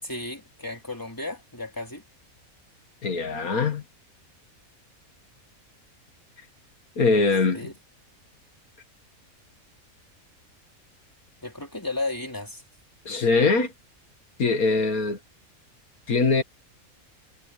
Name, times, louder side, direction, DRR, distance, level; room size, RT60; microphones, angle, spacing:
voice 1, 0.0-2.0 7.1-7.3 7.5-7.7 11.4-12.6, left 2 dB, 15° left, 3.7 m, -34 dB
voice 2, 3.0-3.8 7.0-7.6 13.1-13.7 14.4-15.2 16.1-16.4, left 4 dB, 80° left, 2.3 m, -22 dB
omnidirectional pair, 1.5 m